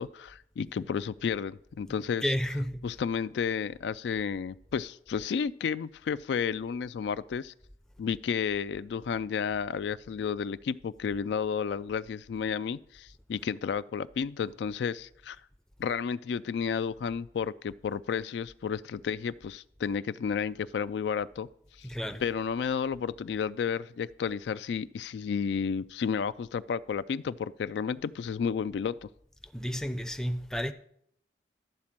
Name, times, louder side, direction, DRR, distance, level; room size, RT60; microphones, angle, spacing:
voice 1, 0.0-2.2 2.8-7.5 8.0-15.4 15.8-21.5 21.8-21.9 22.2-29.1, left 6 dB, 75° left, 0.3 m, -32 dB
voice 2, 1.9-2.9 21.8-22.3 29.5-30.7, equal, 5° left, 0.4 m, -32 dB
12.0 x 4.3 x 7.4 m
head